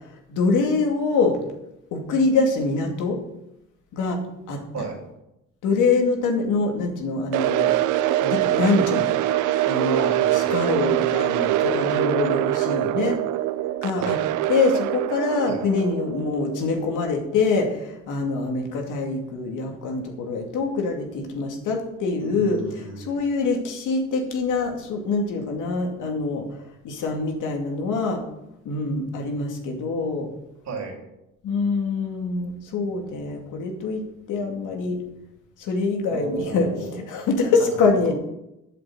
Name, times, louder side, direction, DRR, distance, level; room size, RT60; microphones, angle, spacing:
voice 1, 0.3-1.4 1.9-3.2 3.9-4.2 4.5-4.6 5.6-7.7 8.2-9.1 9.7-13.2 13.8-14.2 14.5-22.6 23.0-26.5 26.8-28.2 28.6-30.3 31.4-34.0 34.3-35.0 35.6-36.7 37.1-38.1, left 4 dB, 85° left, 2 dB, 2.5 m, -24 dB
sound 1, 7.3-17.4, right 14 dB, 90° right, 0.6 m, -24 dB
voice 2, 9.8-10.6 14.0-14.2 15.5-15.6 22.2-23.2 30.7-31.0 36.1-37.0 37.6-38.1, right 4 dB, 65° right, 2 dB, 3.6 m, -33 dB
8.7 x 7.7 x 7.9 m, 0.87 s
cardioid pair, 90°, 30 cm